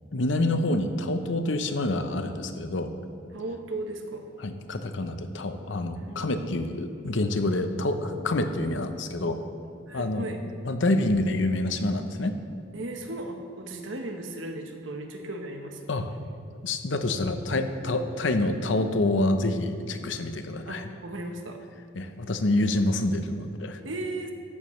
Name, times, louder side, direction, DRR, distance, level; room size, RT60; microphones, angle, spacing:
voice 1, 0.1-2.9 4.4-9.4 9.9-10.3 10.6-12.4 15.9-16.1 16.6-20.9 21.9-23.8, left 2 dB, 70° left, 8 dB, 0.8 m, -27 dB
voice 2, 3.3-4.2 5.9-6.5 9.9-10.4 12.7-15.8 20.7-21.6 23.8-24.3, right 2 dB, 80° right, 4 dB, 1.1 m, -36 dB
13.5 x 11.0 x 3.2 m, 2.3 s
head